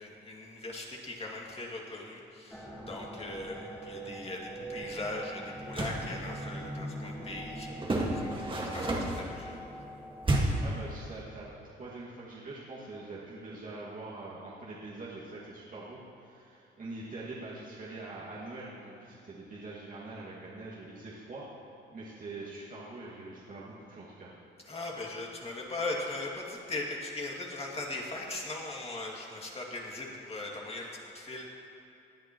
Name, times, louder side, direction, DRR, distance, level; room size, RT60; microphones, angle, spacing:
voice 1, 0.0-9.5 24.7-31.5, left 2 dB, 30° left, -2 dB, 2.2 m, -39 dB
sound 1, 2.5-10.5, right 1 dB, 10° left, 1.6 m, -43 dB
sound 2, 5.6-6.1 7.8-9.3 10.2-10.7, right 2 dB, 25° right, 1.8 m, -30 dB
voice 2, 10.3-21.4 21.9-24.3, right 2 dB, 45° right, -7 dB, 2.1 m, -44 dB
19.0 x 10.5 x 3.1 m, 2.8 s
cardioid pair, 90°, 20 cm